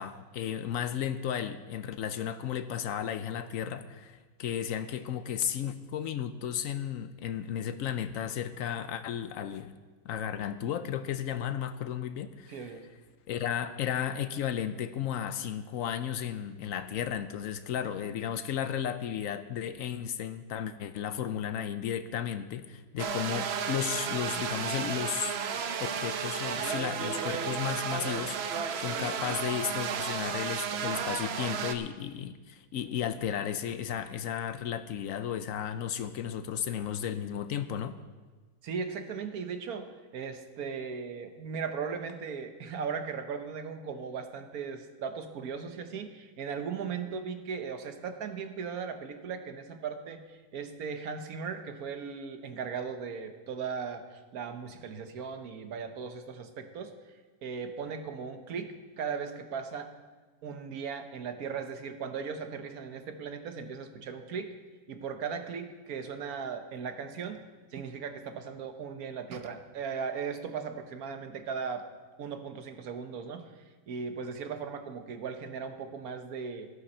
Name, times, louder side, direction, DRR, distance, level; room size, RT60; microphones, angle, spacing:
voice 1, 0.0-9.7 10.0-12.7 13.3-25.4 25.8-38.0, left 9 dB, 70° left, 11 dB, 0.9 m, -34 dB
voice 2, 12.5-12.9 32.7-32.9 38.6-57.1 57.4-59.9 60.4-64.5 64.9-67.4 67.7-71.9 72.2-73.5 73.9-76.7, right 6 dB, 80° right, 7 dB, 1.4 m, -37 dB
sound 1, 23.0-31.7, right 7 dB, 55° right, 0.8 m, -33 dB
14.0 x 11.0 x 4.3 m, 1.3 s
omnidirectional pair, 1.6 m